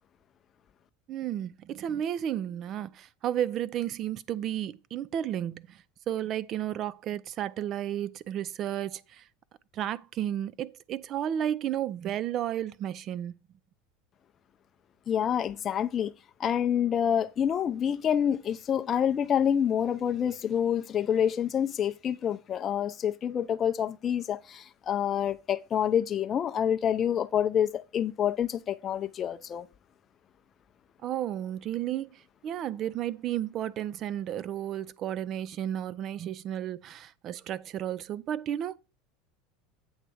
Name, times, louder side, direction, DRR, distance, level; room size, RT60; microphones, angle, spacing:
voice 1, 1.1-9.2 9.7-13.3 31.0-38.8, right 11 dB, 45° right, 0.4 m, -33 dB
voice 2, 15.1-16.1 16.4-29.7, left 9 dB, 35° left, 0.5 m, -27 dB
8.0 x 3.2 x 6.2 m
supercardioid pair, 110°, 0 cm